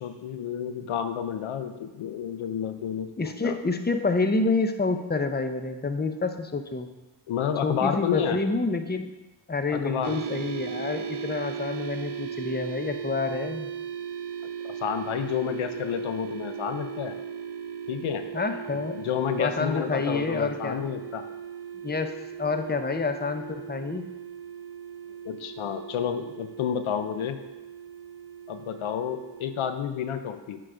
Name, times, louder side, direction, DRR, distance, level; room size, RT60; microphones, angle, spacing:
voice 1, 0.0-3.6 7.3-8.4 9.7-10.1 14.6-17.1 17.9-18.2 18.9-21.2 25.2-27.4 28.5-30.6, left 8 dB, 90° left, 9 dB, 0.6 m, -30 dB
voice 2, 3.2-6.9 7.6-9.1 9.5-13.7 18.3-19.0 19.4-20.9 21.8-22.1 22.4-24.1, left 3 dB, 20° left, 7 dB, 0.8 m, -28 dB
sound 1, 10.0-29.7, right 7 dB, 55° right, 0.8 m, -38 dB
9.0 x 3.9 x 5.0 m, 1.1 s
cardioid pair, 45°, 47 cm